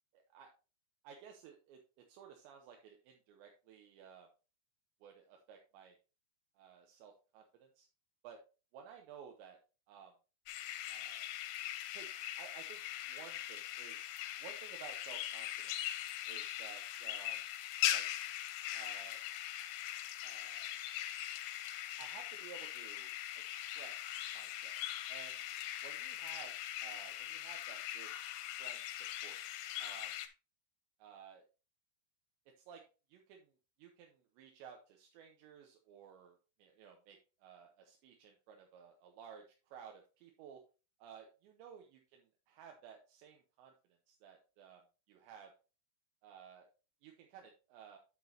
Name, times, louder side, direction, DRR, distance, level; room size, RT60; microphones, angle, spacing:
voice 1, 0.1-0.5 1.0-1.8 2.1-4.3 5.0-6.0 6.6-7.9 8.2-8.4 8.7-9.6 9.9-10.1 10.9-11.3 11.9-12.1 12.4-14.1 14.4-15.9 16.3-17.4 17.9-18.1 18.7-19.2 20.2-20.7 22.0-23.1 23.5-24.8 25.1-25.4 25.8-26.5 26.8-28.1 28.6-29.4 29.8-30.1 31.0-31.4 32.6-32.8 33.1-40.6 41.0-43.7 44.1-44.8 45.1-45.5 46.2-46.7 47.0-48.0, right 7 dB, 80° right, 2 dB, 2.9 m, -55 dB
sound 1, 10.5-30.3, left 13 dB, 85° left, 2.8 m, -41 dB
10.5 x 6.1 x 2.7 m, 0.33 s
omnidirectional pair, 5.5 m